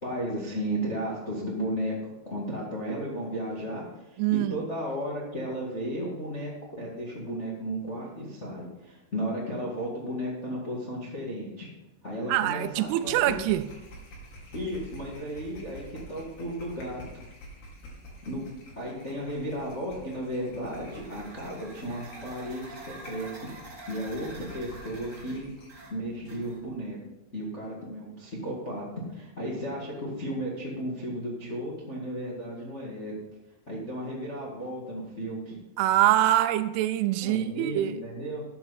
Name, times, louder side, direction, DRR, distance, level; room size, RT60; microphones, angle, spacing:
voice 1, 0.0-6.5 6.8-11.7 12.0-13.4 14.5-17.0 18.2-23.3 23.9-25.5 25.9-27.0 27.3-33.1 33.7-35.6 37.3-38.4, equal, 30° left, 1.3 m, -34 dB
voice 2, 4.2-4.6 12.3-13.7 35.8-38.0, right 13 dB, 85° right, 2.5 m, -24 dB
sound 1, 12.4-25.8, equal, 75° left, 4.7 m, -48 dB
sound 2, 20.6-26.8, right 2 dB, 25° right, 2.0 m, -47 dB
13.5 x 8.7 x 4.2 m
omnidirectional pair, 4.6 m